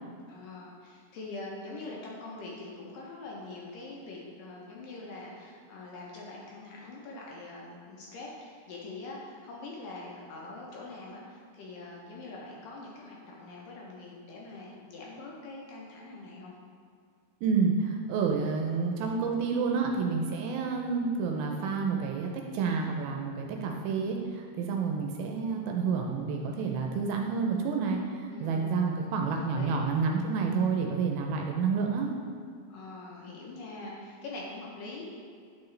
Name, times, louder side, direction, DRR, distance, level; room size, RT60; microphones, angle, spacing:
voice 1, 0.3-16.5 28.3-29.1 29.5-29.8 32.7-35.0, left 2 dB, 75° left, -3 dB, 2.1 m, -43 dB
voice 2, 17.4-32.1, right 5 dB, 80° right, 2 dB, 2.2 m, -29 dB
9.3 x 4.7 x 3.2 m, 2.2 s
omnidirectional pair, 4.5 m